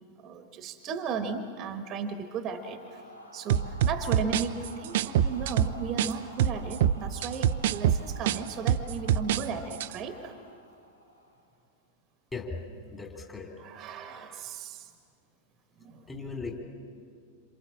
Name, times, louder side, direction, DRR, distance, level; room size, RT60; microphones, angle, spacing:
voice 1, 0.2-3.0 3.3-10.4 13.6-14.9 15.8-16.1, right 5 dB, 30° right, 8 dB, 1.4 m, -36 dB
sound 1, 2.4-11.5, equal, 80° left, 2.8 m, -50 dB
sound 2, 3.5-6.1 6.4-9.4 9.7-9.9, right 10 dB, 55° right, 0.6 m, -25 dB
voice 2, 12.9-13.5 16.1-16.6, left 4 dB, 15° left, 1 dB, 3.6 m, -37 dB
27.5 x 27.0 x 7.4 m, 2.2 s
figure-of-eight pair, 90°, 0 cm